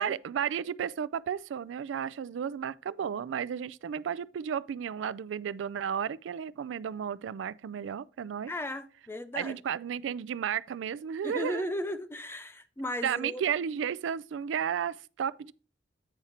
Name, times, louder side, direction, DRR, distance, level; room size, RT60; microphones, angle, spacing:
voice 1, 0.0-8.5 9.3-11.7 13.0-15.5, right 8 dB, 85° right, 0.3 m, -33 dB
voice 2, 8.5-9.6 11.2-13.4, left 1 dB, 15° left, 0.4 m, -36 dB
8.9 x 5.0 x 4.2 m
head